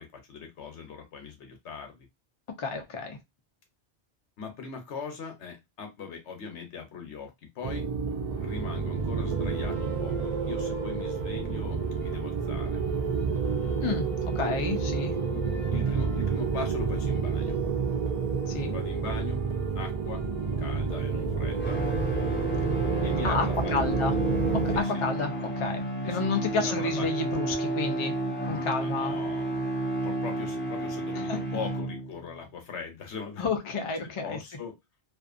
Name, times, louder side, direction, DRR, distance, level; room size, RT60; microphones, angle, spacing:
voice 1, 0.0-2.1 4.4-7.9 8.4-12.8 13.6-13.8 15.3-15.4 15.7-17.6 18.7-19.4 19.7-20.2 20.6-21.8 23.0-23.7 24.7-25.1 26.0-27.1 28.8-29.7 30.0-33.5 34.0-34.8, left 5 dB, 80° left, 1.1 m, -40 dB
voice 2, 2.6-3.2 13.8-15.2 18.5-18.7 23.2-24.1 24.5-28.2 28.4-29.2 31.3-31.4 33.4-34.4, left 4 dB, 45° left, 0.4 m, -30 dB
sound 1, 7.6-24.8, right 5 dB, 60° right, 0.4 m, -29 dB
sound 2, 8.2-24.8, equal, 30° left, 1.2 m, -44 dB
sound 3, 21.6-32.3, right 1 dB, 10° left, 0.6 m, -31 dB
2.5 x 2.5 x 2.4 m
omnidirectional pair, 1.2 m